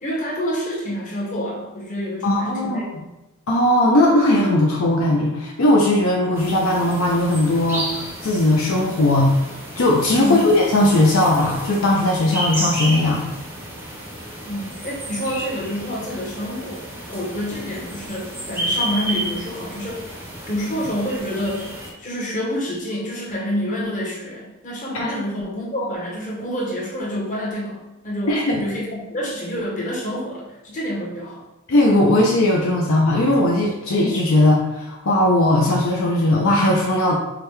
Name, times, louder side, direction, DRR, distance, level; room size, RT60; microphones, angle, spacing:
voice 1, 0.0-2.9 10.2-10.6 14.5-16.8 17.1-20.0 20.5-21.7 22.0-31.4, equal, 35° left, -4 dB, 1.0 m, -28 dB
voice 2, 2.2-2.8 3.5-9.3 9.8-13.3 24.9-25.1 28.3-28.7 31.7-37.1, left 1 dB, 65° left, -1 dB, 0.5 m, -18 dB
sound 1, 6.3-21.9, right 1 dB, 10° right, 0.6 m, -31 dB
4.9 x 2.2 x 3.1 m, 0.96 s
head